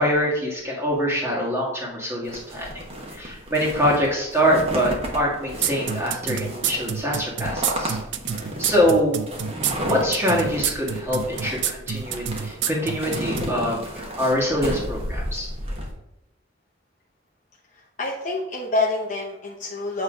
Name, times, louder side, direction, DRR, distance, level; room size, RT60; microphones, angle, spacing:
voice 1, 0.0-2.7 3.1-8.0 8.6-9.3 9.8-15.5, equal, 10° right, -3 dB, 1.7 m, -24 dB
sound 1, 2.3-15.9, equal, 30° right, 1.2 m, -32 dB
sound 2, 5.6-13.5, right 8 dB, 60° right, 0.5 m, -27 dB
voice 2, 18.0-20.0, left 2 dB, 35° left, -4 dB, 0.8 m, -26 dB
8.3 x 3.2 x 5.0 m, 0.88 s
head